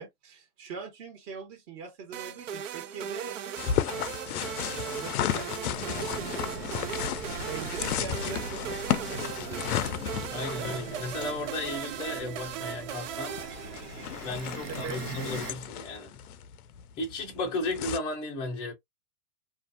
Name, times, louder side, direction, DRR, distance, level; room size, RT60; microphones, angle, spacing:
voice 1, 0.0-3.4 4.3-5.5 7.4-9.9 14.8-15.0, right 5 dB, 35° right, 1.2 m, -42 dB
sound 1, 2.1-14.3, right 9 dB, 55° right, 0.5 m, -38 dB
sound 2, 3.6-18.0, left 10 dB, 65° left, 0.5 m, -34 dB
sound 3, 5.7-15.5, right 6 dB, 70° right, 0.9 m, -42 dB
voice 2, 10.3-13.4 14.2-16.2 17.0-18.7, left 2 dB, 10° left, 0.5 m, -34 dB
2.5 x 2.4 x 2.6 m
hypercardioid pair, 150°, 47 cm